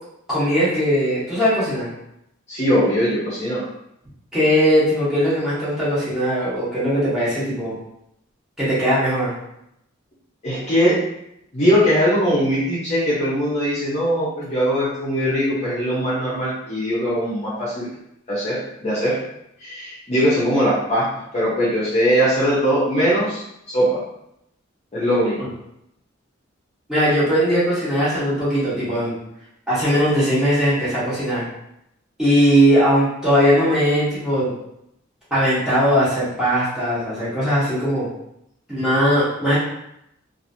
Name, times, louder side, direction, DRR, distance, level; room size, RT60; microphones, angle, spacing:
voice 1, 0.3-1.9 4.3-7.7 8.6-9.3 25.4-25.5 26.9-29.1 29.7-31.4 32.2-34.5 35.3-38.1 38.7-39.6, equal, 5° right, -11 dB, 1.2 m, -19 dB
voice 2, 2.5-3.6 10.4-11.0 11.5-17.9 18.3-19.2 19.6-21.1 21.3-23.4 23.7-24.0 24.9-25.3, equal, 30° left, -8 dB, 0.8 m, -20 dB
2.9 x 2.6 x 2.7 m, 0.80 s
head